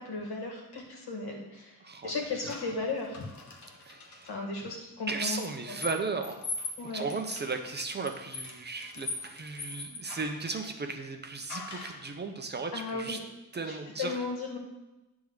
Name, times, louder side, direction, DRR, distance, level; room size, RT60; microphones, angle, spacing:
voice 1, 0.0-3.3 4.2-5.4 5.7-5.8 6.8-7.0 12.7-13.2 13.7-14.6, left 3 dB, 85° left, 1 dB, 1.9 m, -35 dB
voice 2, 1.8-2.1 3.8-4.3 5.1-6.4 6.8-13.2 13.5-14.2, right 4 dB, 30° right, 5 dB, 0.6 m, -36 dB
sound 1, 2.5-4.3 5.3-10.5 11.5-12.1, left 3 dB, 50° left, 1.1 m, -41 dB
9.6 x 3.6 x 6.4 m, 0.99 s
wide cardioid pair, 175°, 38 cm